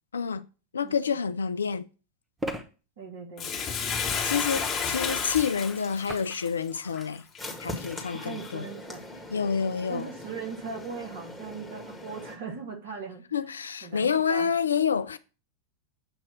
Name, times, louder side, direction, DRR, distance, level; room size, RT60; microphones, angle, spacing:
voice 1, 0.1-0.4 0.7-1.9 4.2-7.2 7.6-8.7 9.3-10.1 13.3-15.2, left 6 dB, 70° left, 0.4 m, -28 dB
sound 1, 0.9-1.0 2.4-2.6 4.5-5.0 6.1-6.4 6.8-7.1 7.9-8.0, equal, 10° right, 1.0 m, -36 dB
voice 2, 3.0-3.6 8.1-9.0 9.9-13.2 13.8-14.5, right 5 dB, 55° right, 1.9 m, -39 dB
Bathtub (filling or washing), 3.4-7.9 8.4-8.5, left 6 dB, 30° left, 1.5 m, -31 dB
sound 2, 7.4-12.4, left 2 dB, 5° left, 1.7 m, -41 dB
7.7 x 2.9 x 6.0 m
figure-of-eight pair, 90°, 0 cm